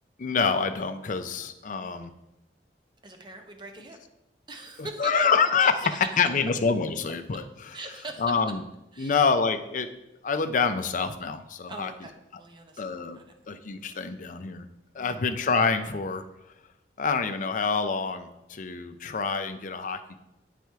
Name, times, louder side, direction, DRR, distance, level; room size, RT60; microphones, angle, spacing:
voice 1, 0.2-2.1 5.0-5.9 6.2-7.4 8.2-8.6 9.0-9.9 10.2-11.9 12.8-13.2 13.5-14.7 14.9-16.2 17.0-20.2, left 5 dB, 45° left, 9 dB, 0.5 m, -26 dB
voice 2, 3.0-4.0 4.5-5.3 5.9-6.2 7.7-8.2 8.9-9.3 11.7-13.3 15.0-15.3, right 2 dB, 25° right, 4 dB, 0.8 m, -42 dB
8.0 x 4.2 x 4.6 m, 0.90 s
head